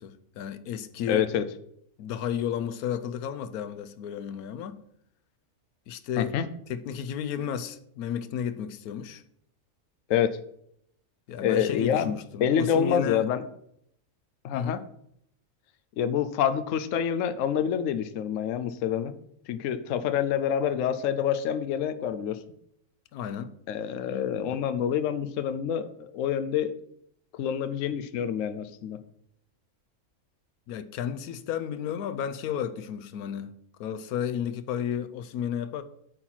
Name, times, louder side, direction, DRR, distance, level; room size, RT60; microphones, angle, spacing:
voice 1, 0.0-1.3 2.0-4.8 5.9-6.4 6.7-9.2 11.3-13.3 14.5-14.8 23.1-23.5 30.7-33.5 33.8-35.8, left 8 dB, 90° left, 1.1 m, -33 dB
voice 2, 1.1-1.4 6.2-6.5 10.1-10.4 11.4-12.1 12.4-13.4 14.4-14.8 16.0-19.1 19.5-22.4 23.7-26.7 27.3-29.0, left 9 dB, 65° left, 1.0 m, -27 dB
8.8 x 4.4 x 5.8 m
omnidirectional pair, 1.5 m